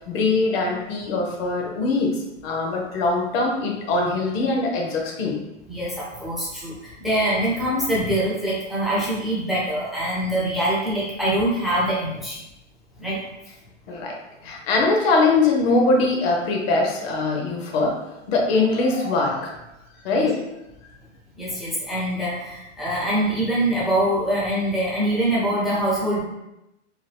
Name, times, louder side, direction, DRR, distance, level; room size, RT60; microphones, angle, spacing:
voice 1, 0.1-2.1 2.4-5.4 13.9-14.2 14.4-17.9 18.3-19.5 20.0-20.4, left 3 dB, 50° left, 0 dB, 0.8 m, -22 dB
voice 2, 5.7-12.4 13.0-13.2 20.1-20.3 21.4-26.2, right 1 dB, ahead, -8 dB, 0.4 m, -24 dB
2.9 x 2.1 x 3.2 m, 0.92 s
hypercardioid pair, 125°, 39 cm